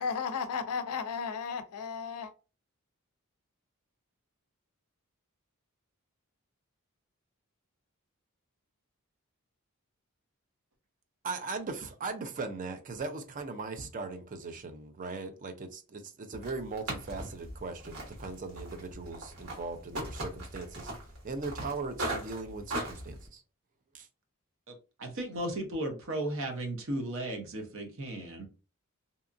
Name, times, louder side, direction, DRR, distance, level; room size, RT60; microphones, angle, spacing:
voice 1, 0.0-2.3, left 6 dB, 80° left, 0.4 m, -34 dB
voice 2, 11.2-20.9 21.2-23.4 23.9-24.1, right 3 dB, 35° right, 0.4 m, -39 dB
sound 1, 16.4-23.3, right 1 dB, 85° right, 1.4 m, -39 dB
voice 3, 24.7-28.5, right 1 dB, 60° right, 0.7 m, -35 dB
2.7 x 2.4 x 2.5 m
head